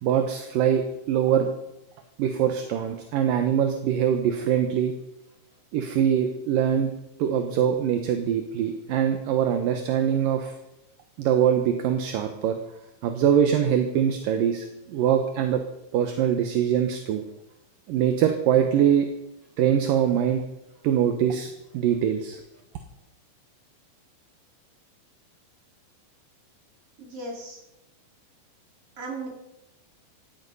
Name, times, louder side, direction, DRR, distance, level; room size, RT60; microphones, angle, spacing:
voice 1, 0.0-1.5 2.2-4.9 5.7-6.9 7.2-10.6 11.2-12.6 13.0-15.6 15.9-17.2 17.9-19.1 19.6-20.4 20.8-22.4, right 9 dB, 70° right, 6 dB, 2.7 m, -23 dB
voice 2, 27.0-27.6 29.0-29.3, right 2 dB, 40° right, 0 dB, 4.7 m, -38 dB
17.0 x 14.5 x 5.5 m, 0.89 s
omnidirectional pair, 4.3 m